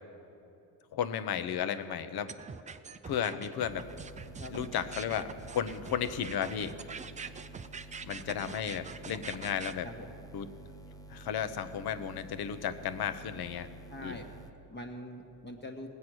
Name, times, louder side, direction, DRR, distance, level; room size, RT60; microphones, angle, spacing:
voice 1, 0.9-2.3 3.0-3.9 4.5-6.8 8.0-9.9 10.3-10.5 11.1-13.7 14.0-14.2, left 8 dB, 60° left, 11 dB, 0.9 m, -34 dB
sound 1, 2.3-9.7, right 5 dB, 20° right, 0.4 m, -44 dB
sound 2, 3.7-14.5, right 2 dB, 10° left, 0.7 m, -50 dB
voice 2, 4.4-4.9 9.8-10.1 13.9-15.9, left 1 dB, 25° left, 3 dB, 1.2 m, -44 dB
19.0 x 8.2 x 6.2 m, 2.8 s
cardioid pair, 110°, 43 cm